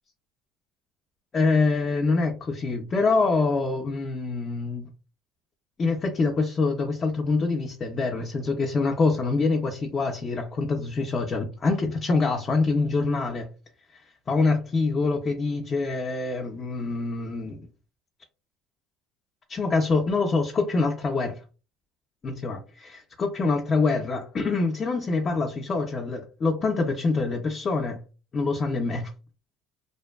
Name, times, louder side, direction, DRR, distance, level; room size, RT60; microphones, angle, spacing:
voice 1, 1.3-4.9 5.8-13.5 13.9-14.0 14.3-17.7 19.5-21.4 22.2-28.0 28.3-29.1, left 3 dB, 30° left, 3 dB, 0.4 m, -25 dB
2.5 x 2.2 x 2.2 m, 0.34 s
cardioid pair, 120°, 0 cm